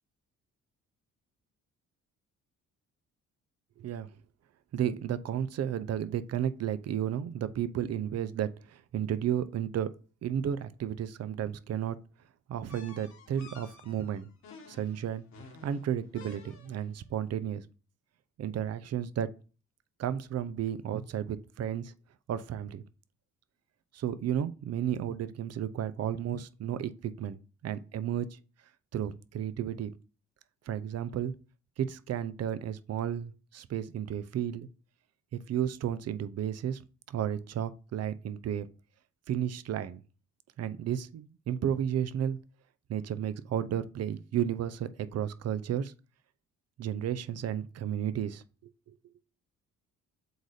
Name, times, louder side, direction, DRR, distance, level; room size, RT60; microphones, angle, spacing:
voice 1, 4.7-9.9 10.2-12.0 12.5-14.3 14.7-15.2 15.6-17.6 18.4-19.3 20.0-21.9 22.3-22.8 23.9-28.4 28.9-29.9 30.7-31.3 31.8-34.7 35.5-36.8 37.1-38.7 39.3-40.0 40.6-42.4 42.9-45.9 46.8-48.7, right 9 dB, 55° right, 0.6 m, -33 dB
sound 1, 12.7-17.0, left 4 dB, 65° left, 1.8 m, -52 dB
7.9 x 2.7 x 4.9 m
cardioid pair, 90°, 30 cm